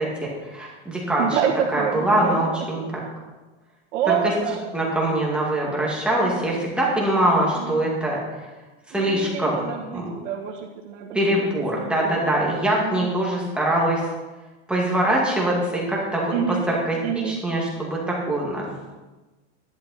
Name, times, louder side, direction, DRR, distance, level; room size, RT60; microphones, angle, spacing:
voice 1, 0.0-1.4 1.7-2.8 4.1-4.2 4.7-8.2 8.9-10.1 11.1-14.0 14.7-17.0 17.2-18.6, right 1 dB, 5° right, -4 dB, 2.1 m, -23 dB
voice 2, 1.2-2.4 3.9-4.6 7.5-7.9 8.9-12.5 12.8-13.1 16.3-16.7 17.0-17.4, right 8 dB, 80° right, -5 dB, 2.0 m, -28 dB
13.0 x 11.5 x 4.2 m, 1.2 s
supercardioid pair, 165°, 35 cm